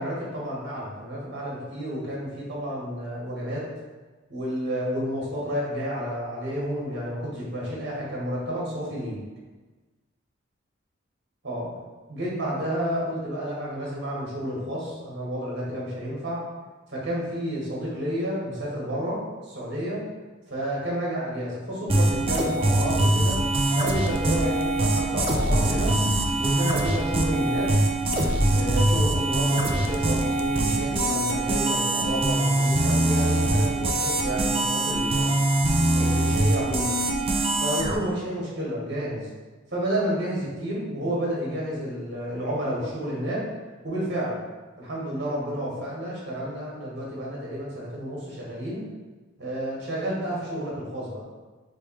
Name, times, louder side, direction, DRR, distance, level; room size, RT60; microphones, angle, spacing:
voice 1, 0.0-3.7 4.3-9.2 11.4-11.7 12.1-16.4 16.9-20.0 20.5-23.4 23.7-26.0 26.4-27.7 28.5-35.3 35.9-37.1 37.6-39.3 39.7-43.5 43.8-44.4 44.8-48.8 49.4-51.2, equal, 60° right, -5 dB, 1.4 m, -30 dB
sound 1, 21.9-37.9, right 1 dB, 30° right, 0.4 m, -23 dB
3.4 x 3.1 x 4.6 m, 1.3 s
head